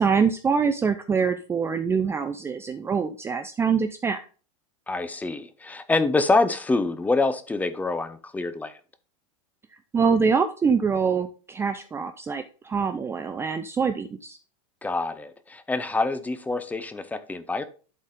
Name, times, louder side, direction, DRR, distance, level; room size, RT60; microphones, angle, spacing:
voice 1, 0.0-4.2 9.9-14.4, right 5 dB, 15° right, 0.5 m, -24 dB
voice 2, 4.9-8.7 14.8-17.6, left 3 dB, 10° left, 0.8 m, -26 dB
11.5 x 4.2 x 3.7 m
supercardioid pair, 130°, 17 cm